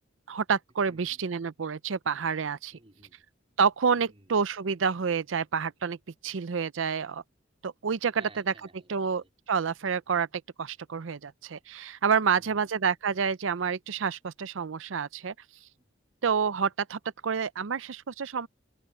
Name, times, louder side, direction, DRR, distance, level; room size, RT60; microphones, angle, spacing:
voice 1, 0.3-2.8 3.6-6.0 6.2-7.2 7.6-8.2 8.9-9.2 9.5-15.3 16.2-18.5, right 6 dB, 80° right, 0.6 m, -28 dB
voice 2, 0.9-1.2 2.7-3.3 3.9-4.4 8.2-9.3 12.3-12.7 15.8-15.9, right 2 dB, 30° right, 4.3 m, -56 dB
head